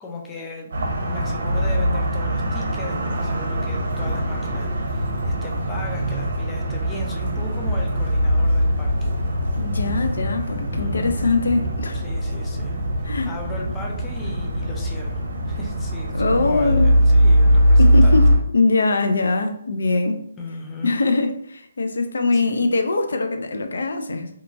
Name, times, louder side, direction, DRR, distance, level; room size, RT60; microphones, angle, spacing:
voice 1, 0.0-9.1 10.7-11.3 11.9-18.2 20.4-21.0 22.3-22.7, left 2 dB, 10° left, -1 dB, 0.3 m, -36 dB
sound 1, 0.7-18.4, equal, 75° right, 0.8 m, -21 dB
voice 2, 9.6-12.0 13.0-13.3 16.1-17.0 17.8-20.2 20.8-24.3, left 3 dB, 80° left, 6 dB, 0.4 m, -22 dB
2.9 x 2.3 x 2.6 m, 0.67 s
hypercardioid pair, 170°, 0 cm